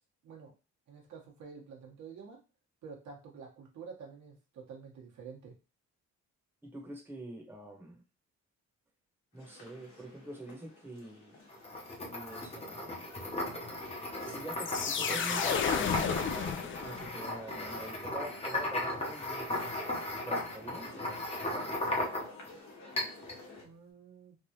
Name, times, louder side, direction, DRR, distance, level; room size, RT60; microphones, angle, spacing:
voice 1, 0.9-2.4 2.8-5.5 23.6-24.4, right 5 dB, 70° right, -1 dB, 1.2 m, -49 dB
voice 2, 6.6-8.0 9.3-11.4 12.1-13.0 14.3-16.0 16.6-19.5 20.2-20.9, right 2 dB, 5° right, 0 dB, 1.0 m, -45 dB
sound 1, 9.3-23.6, left 2 dB, 65° left, 1.3 m, -52 dB
sound 2, 11.5-22.5 23.0-23.4, left 1 dB, 20° left, 0.9 m, -36 dB
sound 3, 14.5-17.3, left 7 dB, 40° left, 0.4 m, -32 dB
3.4 x 2.4 x 2.8 m, 0.32 s
cardioid pair, 90°, 30 cm